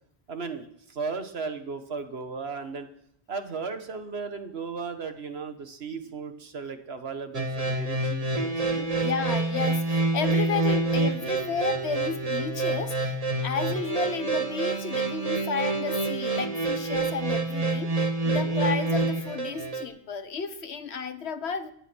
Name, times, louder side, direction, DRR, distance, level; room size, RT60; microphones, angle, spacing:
voice 1, 0.3-2.9 3.3-9.1 18.3-18.6, right 4 dB, 70° right, 8 dB, 1.6 m, -36 dB
sound 1, 7.3-19.8, right 3 dB, 35° right, 1.6 m, -27 dB
voice 2, 8.9-21.7, left 5 dB, 80° left, 11 dB, 1.4 m, -32 dB
16.0 x 11.5 x 6.2 m, 0.71 s
omnidirectional pair, 1.1 m